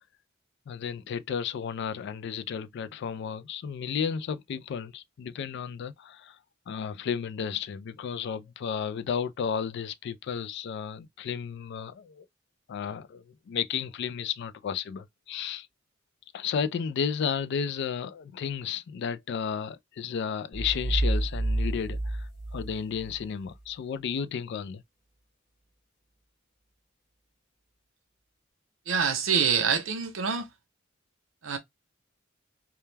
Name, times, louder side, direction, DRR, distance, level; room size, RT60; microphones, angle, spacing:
voice 1, 0.7-6.4 6.7-12.3 12.7-15.7 16.3-24.8, left 7 dB, 60° left, 0.3 m, -33 dB
sound 1, 20.5-23.2, right 1 dB, 40° left, 0.8 m, -29 dB
voice 2, 28.9-30.5 31.4-31.6, right 6 dB, 70° right, 0.6 m, -26 dB
2.2 x 2.2 x 3.1 m
head